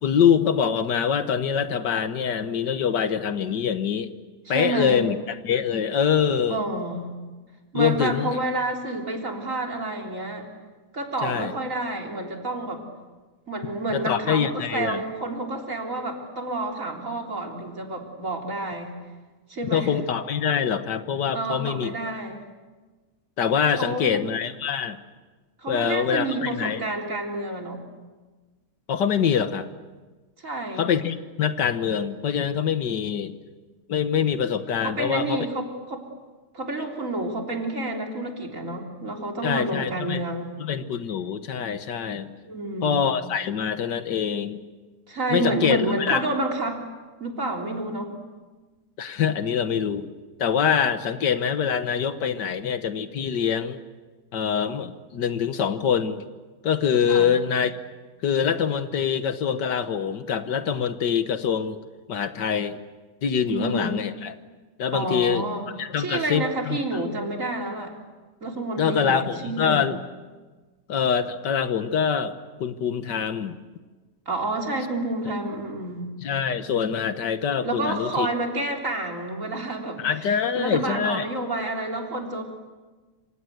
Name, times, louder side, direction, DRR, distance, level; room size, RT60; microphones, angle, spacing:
voice 1, 0.0-4.1 4.5-6.6 7.7-8.4 11.2-11.5 13.9-15.0 19.7-21.9 23.4-25.0 25.7-26.8 28.9-29.7 30.8-33.4 33.9-35.4 39.4-40.2 40.6-42.3 42.8-44.6 45.3-46.2 49.0-50.1 50.4-53.8 54.3-56.2 56.6-57.7 58.2-61.8 62.1-62.8 63.2-64.4 64.8-65.4 65.8-66.8 68.8-70.0 70.9-72.3 72.6-73.6 76.2-78.3 80.0-81.3, left 7 dB, 85° left, 10 dB, 1.9 m, -24 dB
voice 2, 4.5-5.1 6.5-7.1 7.7-10.5 10.9-12.8 13.5-19.0 19.5-19.9 21.3-22.4 23.8-24.2 25.6-27.8 30.4-30.9 34.8-36.0 36.5-40.6 42.4-43.1 45.1-46.8 47.2-48.1 57.1-57.4 63.5-64.0 64.9-65.6 66.0-67.9 68.4-69.8 74.3-76.1 77.6-82.4, right 2 dB, 50° right, 1 dB, 4.1 m, -29 dB
27.0 x 26.0 x 8.0 m, 1.3 s
omnidirectional pair, 1.8 m